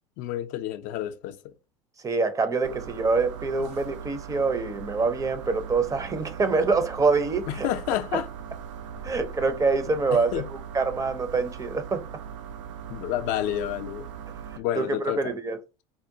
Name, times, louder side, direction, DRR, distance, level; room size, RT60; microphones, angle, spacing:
voice 1, 0.2-1.5 7.5-8.3 10.1-10.5 12.9-14.1 14.5-15.3, left 12 dB, 60° left, 0.4 m, -30 dB
voice 2, 2.0-7.7 8.1-8.2 9.0-10.4 10.7-12.0 14.8-14.9 15.2-15.6, right 4 dB, 20° right, 0.5 m, -25 dB
sound 1, 2.6-14.6, right 8 dB, 90° right, 0.4 m, -40 dB
3.6 x 2.1 x 2.6 m
hypercardioid pair, 85°, 15 cm